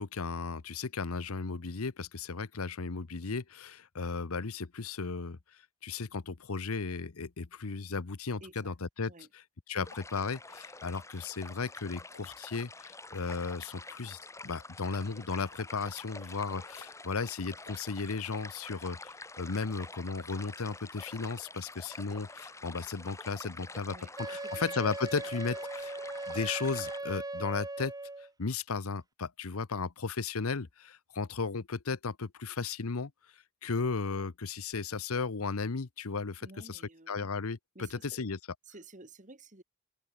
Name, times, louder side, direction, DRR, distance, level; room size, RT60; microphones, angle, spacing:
voice 1, 0.0-5.4 5.8-9.1 9.7-24.0 24.3-26.0 26.3-27.9 28.4-33.1 33.6-36.4 36.7-36.8 37.1-38.4, left 4 dB, 80° left, 0.9 m, -35 dB
voice 2, 8.4-8.7 9.1-9.3 23.9-24.1 24.4-24.6 36.4-37.3 37.7-38.3 38.6-39.6, right 2 dB, 35° right, 2.8 m, -52 dB
sound 1, 9.8-27.0, left 3 dB, 15° left, 2.6 m, -47 dB
Wind instrument woodwind instrument, 24.2-28.3, right 2 dB, 15° right, 1.6 m, -39 dB
head